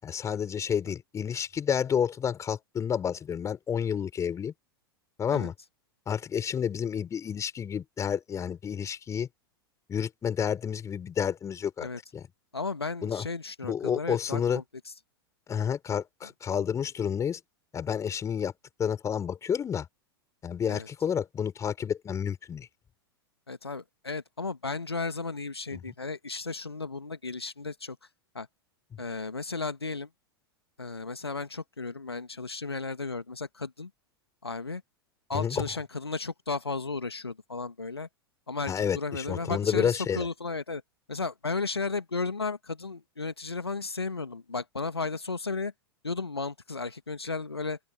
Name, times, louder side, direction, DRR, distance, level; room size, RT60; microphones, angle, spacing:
voice 1, 0.0-4.5 5.2-5.5 6.1-9.3 9.9-11.9 12.1-12.2 13.0-13.3 13.6-14.6 15.5-17.4 17.7-18.5 18.8-19.9 20.4-22.7 25.7-25.8 35.3-35.6 38.7-40.3, left 8 dB, 25° left, 5.5 m, -30 dB
voice 2, 12.5-14.6 20.7-20.9 23.5-28.0 28.3-28.5 29.0-30.1 30.8-33.9 34.4-34.8 35.3-38.1 38.5-40.8 41.1-45.7 46.0-47.8, left 4 dB, 90° left, 1.5 m, -34 dB
open air
figure-of-eight pair, 95°, 13 cm